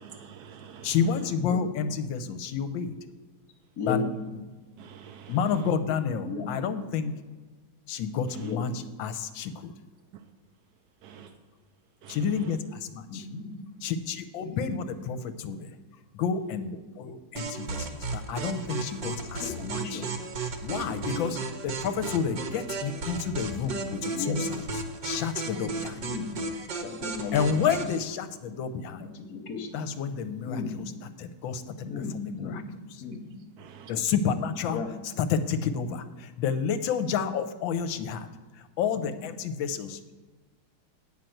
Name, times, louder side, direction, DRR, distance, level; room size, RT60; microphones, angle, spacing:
voice 1, 0.0-0.9 4.8-5.3 11.0-11.3 12.0-12.2 33.7-33.9, right 8 dB, 65° right, 5 dB, 1.0 m, -47 dB
voice 2, 0.8-3.0 3.8-4.0 4.3-4.4 5.3-7.1 7.9-8.7 9.0-9.7 12.1-12.6 12.9-13.2 13.8-15.7 16.1-17.9 18.1-20.0 20.6-21.4 21.6-24.5 25.0-26.0 27.3-29.1 29.7-30.6 31.2-31.7 32.1-32.6 33.9-34.8 35.2-38.3 38.5-40.0, left 6 dB, 75° left, 10 dB, 1.4 m, -30 dB
voice 3, 3.8-4.1 6.2-6.5 8.4-8.6 13.1-13.4 14.4-14.8 17.4-17.8 19.2-20.1 20.8-21.4 24.1-24.4 26.0-26.3 26.7-27.7 28.9-29.7 30.4-30.8 31.8-32.6 33.0-33.2 34.7-34.9 38.9-39.1, left 5 dB, 55° left, 3 dB, 1.4 m, -36 dB
sound 1, 17.4-28.0, right 4 dB, 50° right, 1.3 m, -35 dB
9.0 x 5.8 x 7.7 m, 1.3 s
omnidirectional pair, 2.2 m